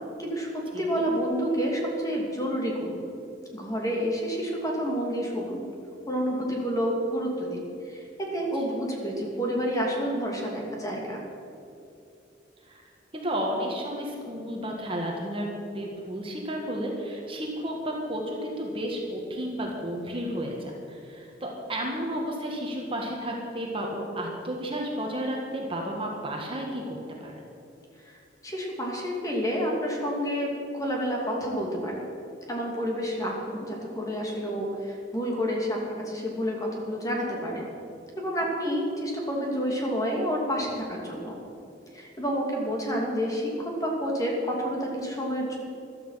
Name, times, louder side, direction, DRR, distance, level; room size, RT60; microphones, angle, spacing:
voice 1, 0.2-3.0 3.5-5.7 6.1-7.6 7.9-8.0 8.3-11.2 28.0-28.2 28.4-32.0 32.5-37.7 38.2-41.4 41.9-45.6, equal, 20° left, -1 dB, 2.7 m, -29 dB
voice 2, 13.1-27.3, equal, 30° right, 0 dB, 1.8 m, -32 dB
15.0 x 12.5 x 5.8 m, 2.7 s
head